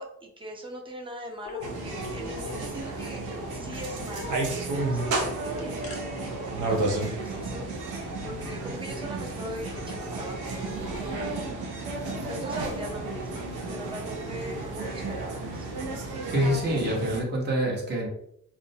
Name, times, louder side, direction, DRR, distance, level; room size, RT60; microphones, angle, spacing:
voice 1, 0.0-3.2 3.5-4.4 4.7-6.0 6.3-11.5 11.8-15.7, right 1 dB, 15° right, 2 dB, 0.5 m, -40 dB
sound 1, 1.2-2.2 2.5-2.6 2.9-3.4 3.7-3.8 4.1-4.3 5.3-6.0, left 2 dB, 25° left, 0.6 m, -51 dB
sound 2, 1.4-1.7 2.4-2.6 3.3-3.6 4.1-4.6 5.1-5.4 7.4-7.5 8.4-8.7 9.9-10.1 10.9-11.0, left 6 dB, 85° left, 0.5 m, -41 dB
sound 3, 1.6-17.2, right 2 dB, 80° right, 0.6 m, -32 dB
voice 2, 16.3-18.1, right 1 dB, 35° right, -1 dB, 0.9 m, -26 dB
2.5 x 2.0 x 2.6 m, 0.69 s
cardioid pair, 90°, 30 cm